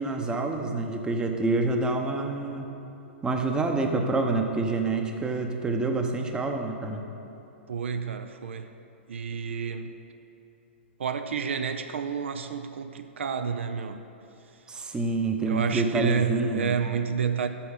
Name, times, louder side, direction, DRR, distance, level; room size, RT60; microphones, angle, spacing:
voice 1, 0.0-2.7 3.2-7.0 14.7-16.8, right 3 dB, 10° right, 4 dB, 0.7 m, -27 dB
voice 2, 7.7-8.7 9.1-9.9 11.0-14.0 15.4-17.5, right 6 dB, 70° right, 9 dB, 0.4 m, -30 dB
8.5 x 6.2 x 5.4 m, 2.9 s
hypercardioid pair, 120°, 7 cm